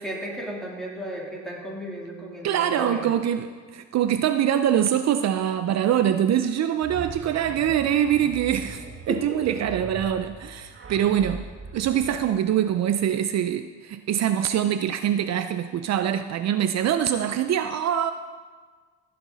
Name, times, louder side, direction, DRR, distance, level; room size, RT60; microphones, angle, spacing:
voice 1, 0.0-3.1 6.4-6.5 9.1-9.6 10.8-11.0, right 1 dB, ahead, -4 dB, 3.2 m, -34 dB
voice 2, 2.4-18.1, right 10 dB, 60° right, 9 dB, 0.5 m, -24 dB
tipo star wars, 6.8-13.0, right 5 dB, 45° right, 1.4 m, -40 dB
15.5 x 7.7 x 4.0 m, 1.5 s
cardioid pair, 90°, 30 cm